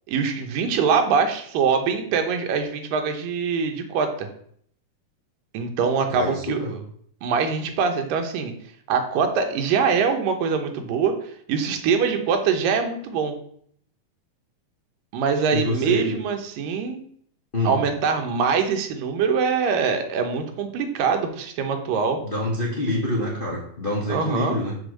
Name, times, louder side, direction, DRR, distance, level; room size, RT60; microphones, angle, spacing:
voice 1, 0.1-4.3 5.5-6.6 7.2-8.5 8.9-13.4 15.1-17.0 17.6-22.2 24.1-24.6, right 6 dB, 90° right, 5 dB, 2.7 m, -23 dB
voice 2, 6.1-6.8 15.5-16.2 17.5-17.8 22.2-24.8, left 1 dB, 65° left, -4 dB, 0.5 m, -26 dB
6.7 x 4.4 x 6.5 m, 0.63 s
omnidirectional pair, 3.8 m